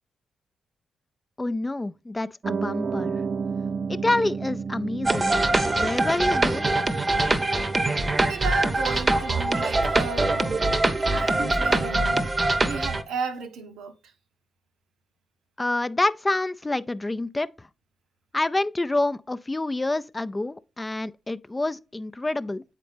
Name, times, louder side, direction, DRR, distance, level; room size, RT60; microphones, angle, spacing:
voice 1, 1.4-3.2 3.9-5.3 5.8-6.8 15.6-17.7 18.3-22.6, left 2 dB, 25° left, 0.4 m, -27 dB
Piano, 2.4-9.0, right 5 dB, 50° right, 0.3 m, -33 dB
sound 1, 5.0-13.0, right 2 dB, 35° right, 0.7 m, -23 dB
voice 2, 8.1-10.7 11.1-12.2 12.6-13.9, right 5 dB, 80° right, 0.7 m, -34 dB
7.7 x 4.1 x 3.3 m
hypercardioid pair, 40°, 0 cm